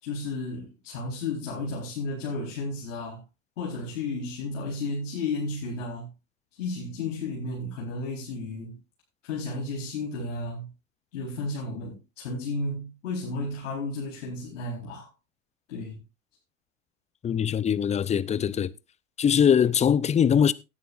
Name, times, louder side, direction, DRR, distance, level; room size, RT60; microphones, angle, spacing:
voice 1, 0.0-3.2 3.6-6.1 6.5-8.7 9.2-10.7 11.1-15.1 15.7-16.0, left 3 dB, 70° left, 4.6 m, -33 dB
voice 2, 17.2-18.7 19.2-20.5, left 8 dB, 20° left, 0.6 m, -22 dB
18.0 x 9.6 x 2.6 m
hypercardioid pair, 90°, 38 cm